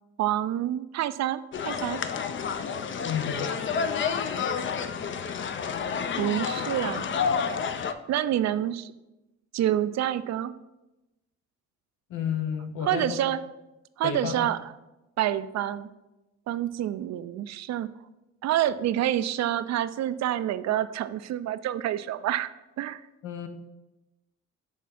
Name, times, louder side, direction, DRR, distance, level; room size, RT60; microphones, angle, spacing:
voice 1, 0.2-2.0 6.2-7.1 8.1-8.9 9.5-10.5 12.8-13.4 14.0-14.7 15.2-15.9 16.5-17.9 18.4-22.5 22.8-23.0, right 12 dB, 60° right, 14 dB, 0.4 m, -27 dB
sound 1, 1.5-7.9, left 6 dB, 40° left, 0.5 m, -29 dB
voice 2, 3.0-3.5 12.1-13.2 14.0-14.5 23.2-23.5, left 7 dB, 80° left, 6 dB, 1.0 m, -31 dB
6.2 x 3.6 x 5.8 m, 0.98 s
cardioid pair, 90°, 30 cm